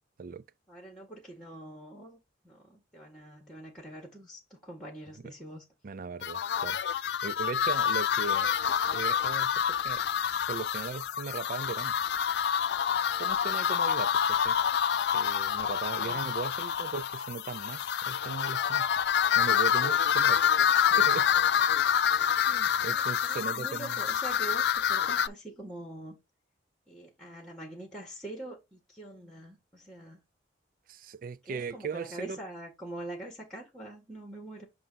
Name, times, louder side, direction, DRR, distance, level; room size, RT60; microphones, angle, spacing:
voice 1, 0.7-2.2 2.4-5.6 16.0-16.2 22.9-26.2 26.9-30.2 31.5-34.7, right 1 dB, 5° left, 1.7 m, -44 dB
voice 2, 5.8-6.8 7.2-8.5 8.9-10.0 10.5-12.0 13.2-14.6 15.1-18.9 19.4-21.3 22.4-24.0 30.9-32.4, right 5 dB, 50° right, 0.4 m, -38 dB
sound 1, 6.2-25.3, left 8 dB, 60° left, 0.3 m, -27 dB
7.6 x 2.5 x 5.5 m
head